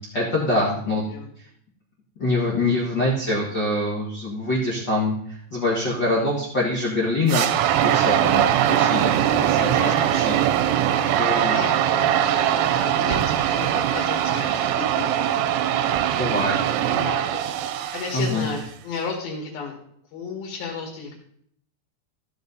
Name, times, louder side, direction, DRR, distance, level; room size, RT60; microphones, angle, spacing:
voice 1, 0.1-1.0 1.4-1.5 2.2-7.5 7.8-10.4 10.6-11.8 16.1-16.6 16.8-17.0 18.1-18.5, left 2 dB, 35° left, -6 dB, 2.0 m, -25 dB
sound 1, 7.3-18.6, right 10 dB, 85° right, 2.7 m, -21 dB
voice 2, 9.3-10.1 11.3-15.3 15.6-16.4 16.8-19.8 20.1-21.1, left 5 dB, 65° left, 0 dB, 3.6 m, -34 dB
15.0 x 6.8 x 4.1 m, 0.66 s
omnidirectional pair, 4.8 m